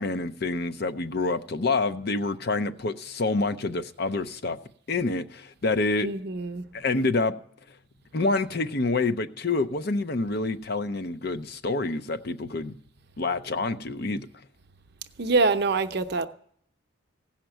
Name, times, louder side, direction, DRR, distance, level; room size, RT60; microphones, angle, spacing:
voice 1, 0.0-4.6 4.9-6.1 6.7-7.4 8.1-12.8 13.2-14.3, left 3 dB, 50° left, 0.6 m, -27 dB
voice 2, 6.0-6.7 15.2-16.3, right 3 dB, 50° right, 0.7 m, -25 dB
16.0 x 5.8 x 9.0 m
head